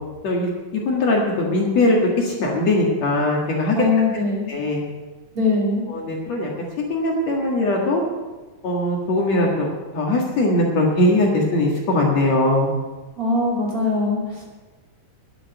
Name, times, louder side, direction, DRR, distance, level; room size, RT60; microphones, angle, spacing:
voice 1, 0.2-3.8 4.5-4.8 5.9-6.5 6.9-8.0 8.6-9.7 9.9-12.7, left 1 dB, 55° left, -1 dB, 2.7 m, -20 dB
voice 2, 3.8-4.5 5.3-5.8 13.2-14.4, left 3 dB, 40° right, -3 dB, 3.5 m, -21 dB
11.0 x 8.9 x 9.1 m, 1.2 s
omnidirectional pair, 4.1 m